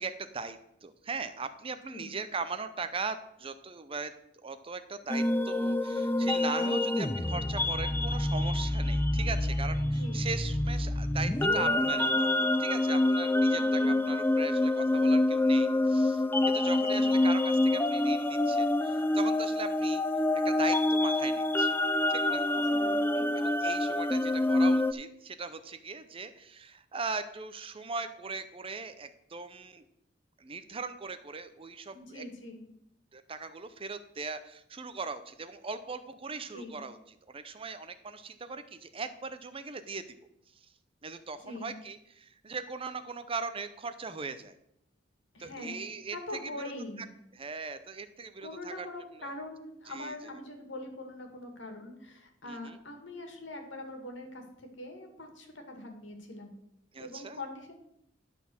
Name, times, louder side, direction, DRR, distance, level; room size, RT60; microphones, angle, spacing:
voice 1, 0.0-4.1 4.4-20.0 20.4-21.8 22.1-22.4 23.3-29.8 30.4-32.2 33.1-37.0 37.3-40.0 41.0-44.5 45.4-46.7 47.4-48.9 49.2-49.3 49.9-50.1 52.4-52.8 56.9-57.4, right 4 dB, 30° right, 11 dB, 0.6 m, -39 dB
sound 1, 5.1-24.9, left 1 dB, 10° left, 0.4 m, -27 dB
voice 2, 6.4-6.9 9.8-10.3 13.5-14.0 16.7-17.1 22.5-23.3 31.9-32.7 36.5-36.8 41.4-41.7 45.3-47.1 48.4-56.6 57.0-57.7, left 2 dB, 75° left, 4 dB, 2.2 m, -43 dB
11.5 x 4.2 x 7.1 m, 0.77 s
head